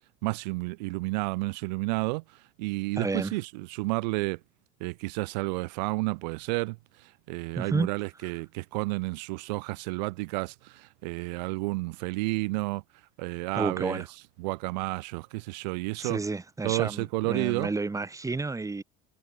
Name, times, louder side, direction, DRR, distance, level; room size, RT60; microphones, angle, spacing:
voice 1, 0.2-4.4 4.8-12.8 13.2-14.0 14.4-16.2 16.6-17.7, right 24 dB, 90° right, 1.4 m, -31 dB
voice 2, 3.0-3.3 7.6-7.9 13.6-14.0 16.0-18.8, right 3 dB, 15° right, 5.6 m, -31 dB
supercardioid pair, 110°, 21 cm